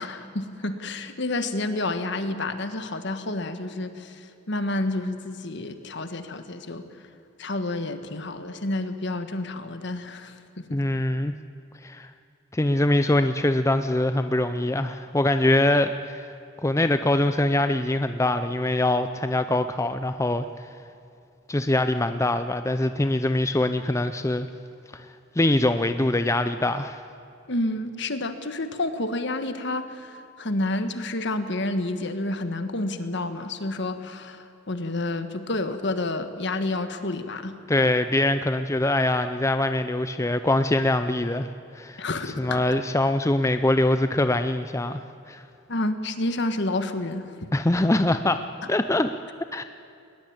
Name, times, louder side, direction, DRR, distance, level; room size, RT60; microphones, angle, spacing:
voice 1, 0.0-4.1 4.5-6.8 7.4-10.6 27.5-30.1 30.4-37.5 42.0-42.6 45.7-47.2, left 2 dB, 60° left, 9 dB, 1.5 m, -29 dB
voice 2, 10.7-11.3 11.8-12.1 12.5-16.3 16.6-20.4 21.5-24.5 24.9-25.1 25.4-27.0 37.7-41.5 41.7-42.0 42.3-45.4 47.5-49.2 49.5-49.6, left 1 dB, 15° left, 9 dB, 0.5 m, -23 dB
21.0 x 20.0 x 8.8 m, 2.5 s
head